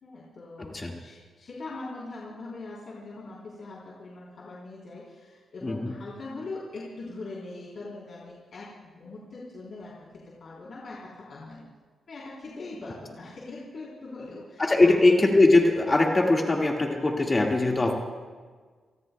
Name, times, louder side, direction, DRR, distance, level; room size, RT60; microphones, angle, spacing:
voice 1, 0.0-11.7 12.1-15.1 17.7-17.8, left 2 dB, 55° left, -6 dB, 3.8 m, -41 dB
voice 2, 14.6-17.9, left 2 dB, 25° left, 0 dB, 1.9 m, -21 dB
29.0 x 19.0 x 2.3 m, 1.5 s
cardioid pair, 115°, 0 cm